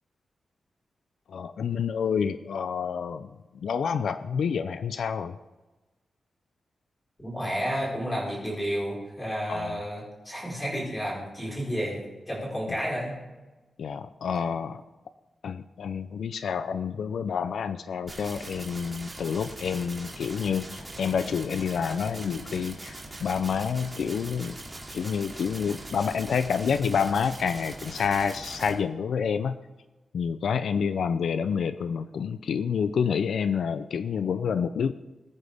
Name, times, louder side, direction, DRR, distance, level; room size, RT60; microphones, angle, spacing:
voice 1, 1.3-3.3 3.6-5.4 9.5-9.8 13.8-14.8 15.4-24.6 24.9-29.6 30.1-34.9, left 6 dB, 80° left, 11 dB, 0.5 m, -28 dB
voice 2, 7.2-13.2, equal, 15° left, -4 dB, 5.0 m, -31 dB
sound 1, 18.1-28.7, right 2 dB, 15° right, 2.7 m, -41 dB
20.5 x 9.7 x 3.6 m, 1.1 s
wide cardioid pair, 175°, 0 cm